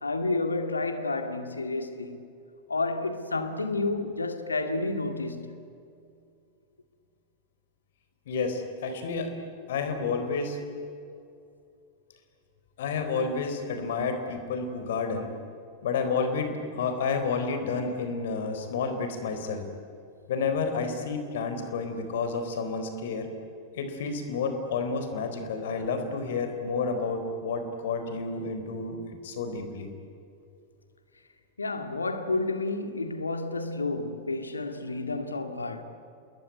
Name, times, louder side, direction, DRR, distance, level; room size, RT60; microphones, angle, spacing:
voice 1, 0.0-2.3 2.7-5.5 31.6-35.8, left 3 dB, 80° left, 2.2 m, -30 dB
voice 2, 8.3-9.3 9.7-10.6 12.8-15.3 15.8-19.6 20.3-23.3 23.7-29.0 29.2-29.9, left 4 dB, 60° left, 4.1 m, -30 dB
28.5 x 21.0 x 9.5 m
figure-of-eight pair, 90°, 0 cm